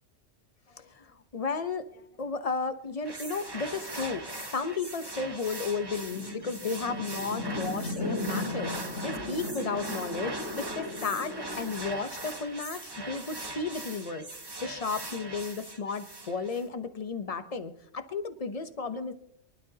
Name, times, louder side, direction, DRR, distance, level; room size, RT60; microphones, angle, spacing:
voice 1, 0.7-14.2 14.6-19.1, left 4 dB, 35° left, 10 dB, 0.8 m, -34 dB
sound 1, 3.0-16.6, right 2 dB, 20° right, 1.0 m, -40 dB
sound 2, 6.1-11.7, left 2 dB, 65° left, 2.1 m, -36 dB
24.0 x 12.0 x 2.8 m, 0.75 s
omnidirectional pair, 1.3 m